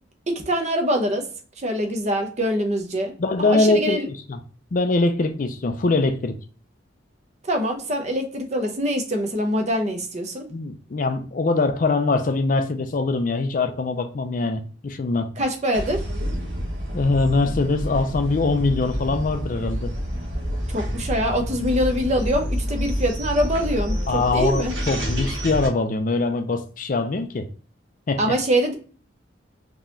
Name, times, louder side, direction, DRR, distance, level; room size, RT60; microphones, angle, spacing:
voice 1, 0.3-1.2 1.6-3.1 3.4-4.0 7.5-10.5 15.4-16.0 20.7-24.7 28.2-28.8, equal, 35° right, 4 dB, 0.7 m, -24 dB
voice 2, 3.2-4.4 4.7-6.3 10.5-15.3 16.9-19.9 24.1-27.5 28.1-28.2, left 3 dB, 45° left, 8 dB, 0.4 m, -22 dB
sound 1, 15.7-25.7, equal, 75° right, 1.1 m, -28 dB
3.9 x 2.9 x 2.5 m, 0.40 s
head